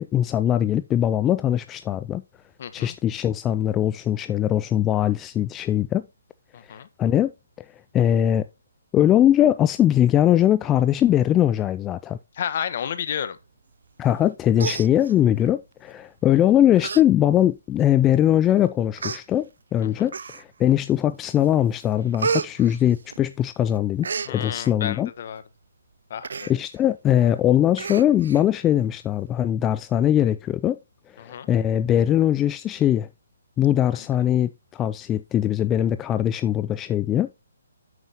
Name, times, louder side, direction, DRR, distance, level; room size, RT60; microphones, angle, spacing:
voice 1, 0.0-2.2 2.7-6.1 6.7-7.3 7.6-7.7 7.9-8.5 8.9-12.2 14.0-25.1 26.5-30.8 31.1-33.1 33.6-37.3, left 11 dB, 15° left, 0.3 m, -21 dB
voice 2, 2.6-2.9 6.5-6.9 12.4-13.4 20.0-20.1 24.2-25.4 26.1-26.5 31.2-31.5, left 8 dB, 50° left, 1.1 m, -31 dB
Human voice, 14.1-14.3 14.6-15.5 16.2-16.4 16.8-17.0 17.4-17.5 18.3-18.4 19.0-19.2 20.1-20.6 21.1-21.5 21.8-23.5 23.7-24.3 26.2-26.5 26.9-27.0 27.3-27.4 27.8-28.4 28.8-28.9, right 5 dB, 70° right, 0.5 m, -30 dB
9.3 x 7.4 x 2.8 m
hypercardioid pair, 150°, 0 cm